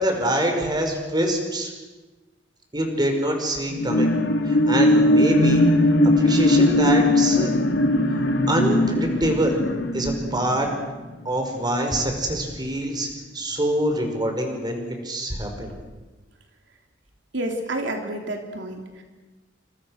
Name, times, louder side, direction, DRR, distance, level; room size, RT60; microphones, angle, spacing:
voice 1, 0.0-1.7 2.7-4.1 4.4-5.6 6.0-7.5 8.1-9.6 9.9-10.7 11.3-13.1 13.3-14.8 15.0-15.7, right 1 dB, 25° right, 3 dB, 5.5 m, -25 dB
sound 1, 3.7-11.5 11.9-12.0, left 1 dB, 70° left, 2.9 m, -20 dB
voice 2, 17.3-19.0, right 1 dB, 75° right, 3 dB, 3.3 m, -29 dB
29.5 x 28.0 x 6.6 m, 1.2 s
head